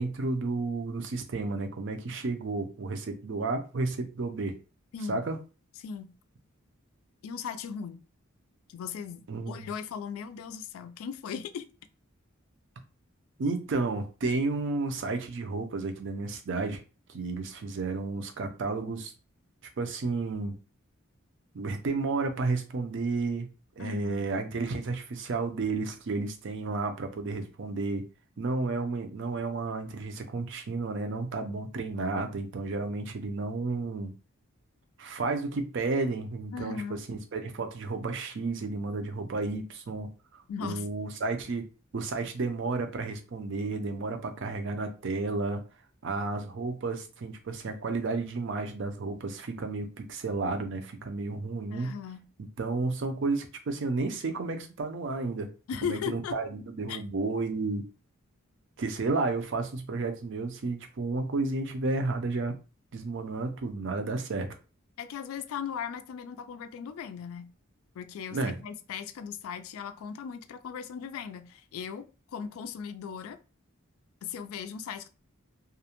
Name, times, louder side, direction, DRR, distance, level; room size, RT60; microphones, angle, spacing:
voice 1, 0.0-4.5 5.1-5.4 9.3-9.7 13.4-16.8 17.1-19.1 19.8-20.6 21.5-23.5 23.8-28.0 28.4-34.1 35.0-40.1 40.6-41.6 41.9-45.6 46.0-51.9 52.6-55.5 55.8-57.8 58.8-62.6 62.9-64.5 68.3-68.6, right 3 dB, 60° right, 0.4 m, -32 dB
voice 2, 7.2-8.0 8.7-11.7 23.8-24.3 36.5-37.0 40.5-40.9 51.7-52.2 55.7-56.4 56.9-57.0 65.0-67.5 67.9-73.4 74.2-75.1, left 7 dB, 80° left, 0.3 m, -38 dB
2.4 x 2.1 x 2.8 m
head